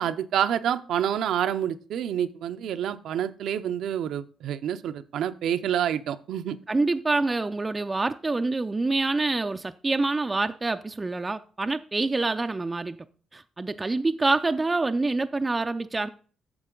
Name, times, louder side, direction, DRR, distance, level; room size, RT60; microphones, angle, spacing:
voice 1, 0.0-6.6, right 9 dB, 75° right, 0.6 m, -28 dB
voice 2, 6.7-13.0 13.3-16.1, right 3 dB, 20° right, 0.4 m, -26 dB
9.6 x 6.9 x 3.8 m
cardioid pair, 90°, 0 cm